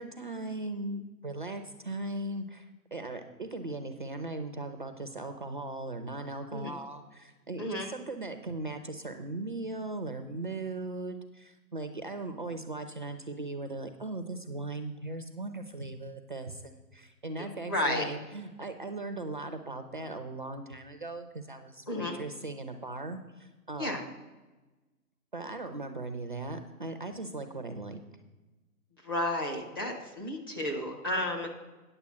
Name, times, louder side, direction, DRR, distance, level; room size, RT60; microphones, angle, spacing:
voice 1, 0.0-24.1 25.3-28.0, right 2 dB, 35° right, 7 dB, 0.5 m, -38 dB
voice 2, 7.6-7.9 17.4-18.1 21.9-22.2 23.8-24.0 29.0-31.5, left 1 dB, 15° left, -1 dB, 0.6 m, -32 dB
9.8 x 6.9 x 5.6 m, 1.1 s
figure-of-eight pair, 130°, 47 cm